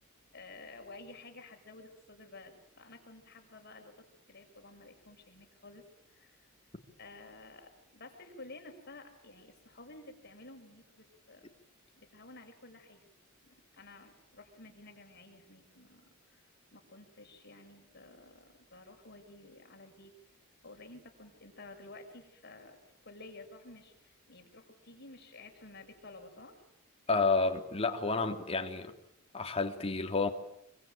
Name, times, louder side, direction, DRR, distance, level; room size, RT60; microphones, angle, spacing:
voice 1, 0.3-6.5 7.0-11.5 12.0-13.1 13.4-20.1 20.6-26.6, left 2 dB, 50° left, 6.1 m, -52 dB
voice 2, 27.1-28.9 29.3-30.3, left 3 dB, 30° left, 3.2 m, -30 dB
26.5 x 24.5 x 9.1 m
head